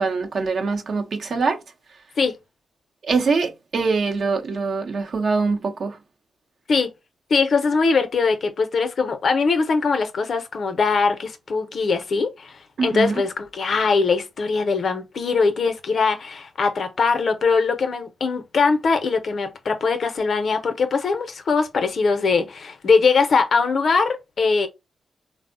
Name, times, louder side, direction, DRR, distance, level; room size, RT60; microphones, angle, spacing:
voice 1, 0.0-1.6 3.1-6.0 12.8-13.1, right 4 dB, 65° right, 0.6 m, -23 dB
voice 2, 7.3-24.7, left 4 dB, 65° left, 0.6 m, -21 dB
3.4 x 2.0 x 2.6 m
supercardioid pair, 45°, 0 cm